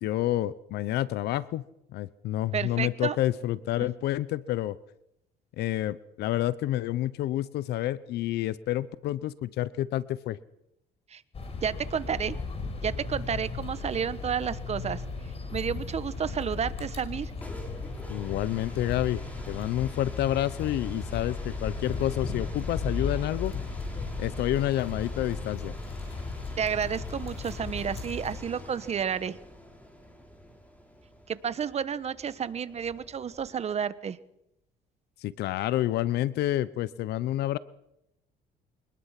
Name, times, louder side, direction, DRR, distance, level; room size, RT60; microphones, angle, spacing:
voice 1, 0.0-1.6 1.9-4.8 5.6-10.4 18.1-19.2 19.5-23.5 24.2-25.7 35.2-37.6, left 14 dB, 75° left, 18 dB, 0.9 m, -29 dB
voice 2, 2.5-3.2 3.8-3.9 11.1-11.2 11.5-12.3 12.8-15.0 15.5-17.3 26.6-29.3 31.3-34.2, right 7 dB, 40° right, 14 dB, 1.3 m, -31 dB
sound 1, 11.3-28.4, left 4 dB, 35° left, 5.4 m, -36 dB
sound 2, 17.1-33.8, equal, 10° left, 5.9 m, -47 dB
24.5 x 20.0 x 6.0 m, 0.82 s
cardioid pair, 110°, 17 cm